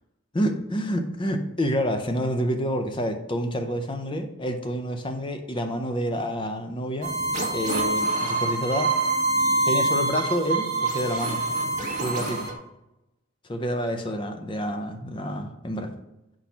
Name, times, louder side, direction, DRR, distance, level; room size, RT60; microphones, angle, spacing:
voice 1, 0.3-7.1 7.5-8.9 9.6-11.4 12.0-12.5 13.5-15.9, equal, 25° left, 6 dB, 0.5 m, -28 dB
sound 1, 7.0-12.5, right 2 dB, 35° right, 1.2 m, -25 dB
4.7 x 4.2 x 5.7 m, 0.92 s
head